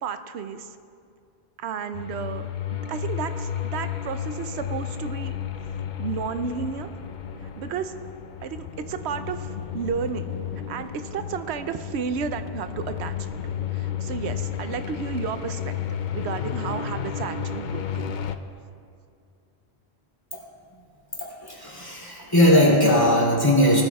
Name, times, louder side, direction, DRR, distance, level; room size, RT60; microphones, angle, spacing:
voice 1, 0.0-0.7 1.6-5.4 6.0-6.9 7.6-7.9 8.4-9.5 9.7-10.3 10.7-13.3 13.7-15.7 16.1-18.2, right 6 dB, 85° right, 10 dB, 0.9 m, -32 dB
sound 1, 1.9-18.4, left 8 dB, 55° left, 0.6 m, -32 dB
voice 2, 21.2-23.8, left 1 dB, 20° left, -5 dB, 2.9 m, -19 dB
19.5 x 13.0 x 2.3 m, 2.4 s
omnidirectional pair, 1.1 m